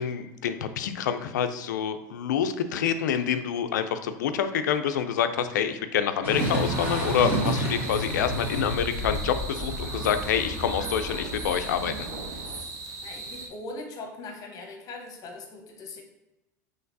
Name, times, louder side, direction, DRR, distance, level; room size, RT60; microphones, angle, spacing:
voice 1, 0.0-12.1, left 8 dB, 90° left, 9 dB, 0.4 m, -27 dB
sound 1, 6.2-12.6, right 1 dB, 15° right, 1.5 m, -31 dB
sound 2, 6.4-13.5, right 3 dB, 35° right, 0.8 m, -39 dB
voice 2, 13.0-16.0, left 2 dB, 40° left, 3 dB, 1.0 m, -40 dB
5.7 x 3.2 x 2.7 m, 0.97 s
supercardioid pair, 110°, 9 cm